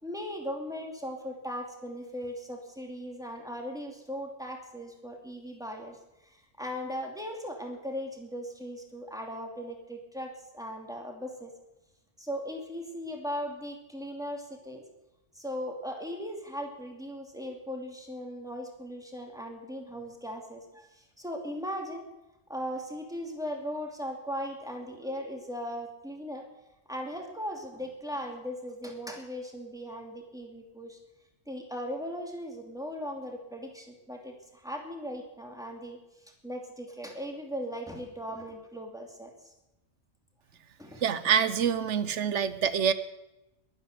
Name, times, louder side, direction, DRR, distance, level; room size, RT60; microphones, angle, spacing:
voice 1, 0.0-6.0 6.2-11.5 12.2-14.8 15.3-22.0 22.5-26.4 26.9-31.0 31.5-36.0 36.4-39.5 40.8-41.4, equal, 5° right, 1 dB, 2.8 m, -38 dB
voice 2, 41.0-42.9, right 7 dB, 80° right, 14 dB, 1.2 m, -26 dB
22.0 x 9.5 x 6.8 m, 0.95 s
omnidirectional pair, 1.2 m